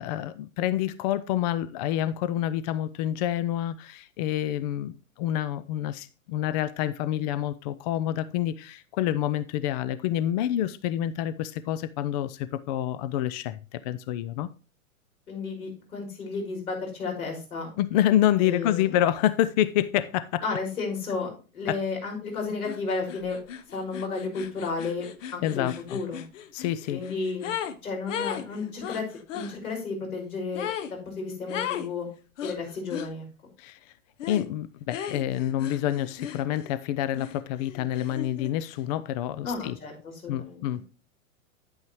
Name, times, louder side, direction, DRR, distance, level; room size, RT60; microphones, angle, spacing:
voice 1, 0.0-14.5 17.8-20.4 21.7-21.8 25.4-26.0 26.5-27.0 33.6-33.8 34.3-39.8 40.3-40.8, left 12 dB, 30° left, 0.4 m, -27 dB
voice 2, 15.3-17.7 18.4-19.0 20.4-23.4 23.7-25.1 25.3-26.2 26.9-27.5 27.8-29.1 29.3-32.1 32.4-33.2 39.4-40.6, left 4 dB, 80° left, 5.5 m, -32 dB
sound 1, 22.6-22.8 23.1-27.8 28.1-29.5 30.5-30.9 31.5-31.9 32.4-33.1 34.2-34.5 34.9-36.8 37.1-38.5, left 9 dB, 60° left, 1.0 m, -36 dB
9.4 x 8.8 x 3.1 m
hypercardioid pair, 115°, 43 cm